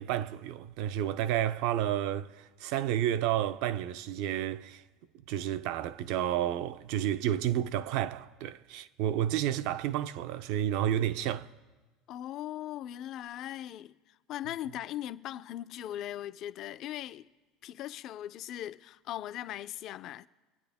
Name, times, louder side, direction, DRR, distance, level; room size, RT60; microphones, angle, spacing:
voice 1, 0.0-4.8 5.3-11.5, right 11 dB, 65° right, 0.5 m, -31 dB
voice 2, 12.1-17.3 17.6-20.3, left 12 dB, 45° left, 0.4 m, -39 dB
26.0 x 9.3 x 3.5 m
supercardioid pair, 140°, 0 cm